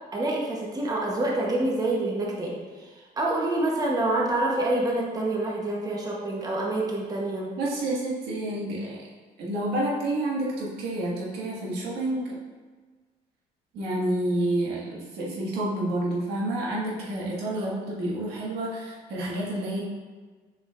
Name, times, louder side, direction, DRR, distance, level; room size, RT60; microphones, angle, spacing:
voice 1, 0.1-7.5 17.6-17.7, right 2 dB, 20° right, -2 dB, 1.0 m, -27 dB
voice 2, 7.6-9.0 9.4-12.3 13.7-19.8, right 1 dB, 80° right, -5 dB, 1.7 m, -29 dB
7.0 x 5.5 x 2.5 m, 1.4 s
cardioid pair, 110°, 17 cm